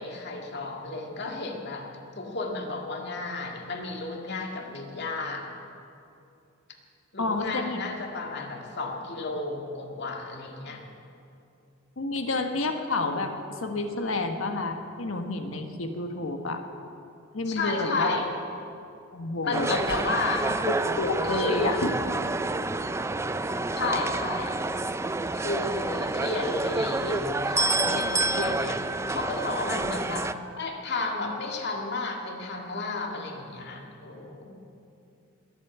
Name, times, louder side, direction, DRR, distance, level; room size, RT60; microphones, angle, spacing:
voice 1, 0.0-1.9 2.2-5.5 7.1-10.9 17.5-18.3 19.4-20.5 21.2-21.7 23.7-24.6 25.3-28.8 29.1-30.3 30.6-34.6, left 3 dB, 60° left, 2 dB, 2.0 m, -32 dB
voice 2, 7.2-7.8 12.0-16.6 17.3-18.2 19.1-19.8 20.6-21.9, left 2 dB, 85° left, 5 dB, 1.3 m, -29 dB
sound 1, 19.5-30.3, right 2 dB, 15° right, 0.4 m, -28 dB
21.0 x 8.4 x 8.1 m, 2.7 s
head